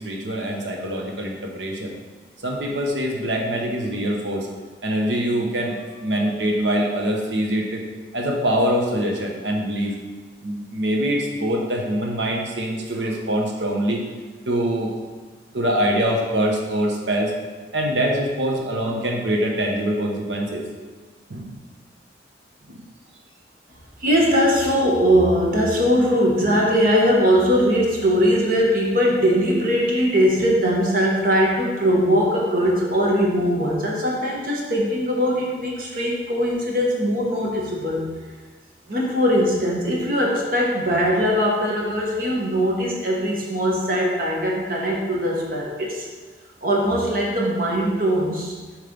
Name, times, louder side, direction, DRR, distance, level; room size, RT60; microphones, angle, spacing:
voice 1, 0.0-1.9 2.4-4.5 4.8-7.8 8.1-9.9 10.4-14.0 14.5-15.0 15.5-17.3 17.7-20.6 21.3-21.5, equal, 85° right, 1 dB, 1.0 m, -24 dB
voice 2, 24.0-38.0 38.9-46.1 46.6-48.5, equal, 50° right, -2 dB, 1.2 m, -20 dB
6.7 x 3.3 x 5.2 m, 1.4 s
head